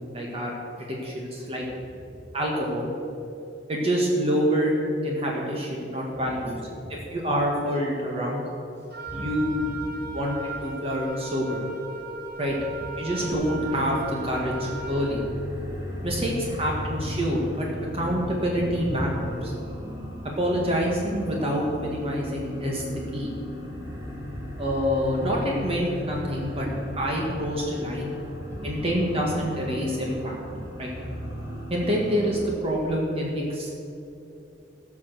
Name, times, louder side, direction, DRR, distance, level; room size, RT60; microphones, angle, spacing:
voice 1, 0.1-0.5 0.8-1.7 2.3-2.9 3.7-4.7 5.0-6.6 6.9-8.4 9.1-9.5 10.1-11.6 12.4-12.6 13.0-15.3 16.0-17.7 17.9-19.5 20.4-22.8 23.1-23.3 24.6-26.7 27.0-28.1 28.6-30.4 30.8-30.9 31.7-33.7, equal, 35° right, -2 dB, 1.6 m, -27 dB
Wind instrument woodwind instrument, 8.9-15.1, right 3 dB, 60° right, 1.5 m, -37 dB
voice 2, 9.1-10.2 15.9-16.2 18.8-19.0 23.6-24.5 26.5-27.0 28.5-28.9, equal, 15° left, -3 dB, 3.0 m, -39 dB
sound 1, 13.3-32.5, left 1 dB, 15° right, 2.8 m, -36 dB
15.5 x 6.1 x 6.7 m, 2.8 s
head